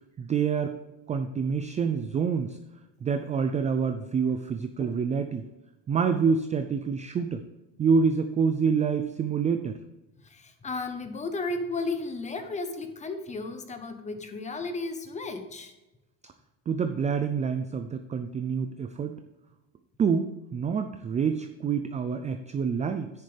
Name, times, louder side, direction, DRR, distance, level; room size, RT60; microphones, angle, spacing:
voice 1, 0.2-0.8 1.1-2.6 3.0-5.5 5.9-7.4 7.8-9.8 16.7-19.2 20.0-23.1, right 6 dB, 20° right, 8 dB, 0.4 m, -27 dB
voice 2, 10.2-15.7, left 3 dB, 20° left, 8 dB, 1.1 m, -34 dB
10.0 x 9.8 x 3.4 m, 1.0 s
cardioid pair, 150°, 39 cm